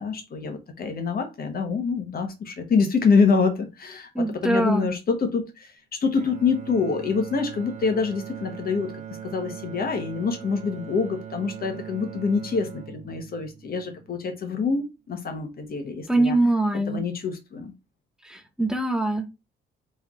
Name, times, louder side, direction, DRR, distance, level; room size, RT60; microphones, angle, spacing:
voice 1, 0.0-8.9 9.2-16.4 16.9-17.7, left 5 dB, 50° left, 6 dB, 1.1 m, -26 dB
voice 2, 4.1-4.9 16.1-17.0 18.3-19.3, right 2 dB, 5° right, 7 dB, 0.8 m, -23 dB
Bowed string instrument, 6.2-14.4, right 9 dB, 35° right, 0.8 m, -40 dB
3.5 x 3.2 x 3.6 m, 0.26 s
cardioid pair, 90°, 20 cm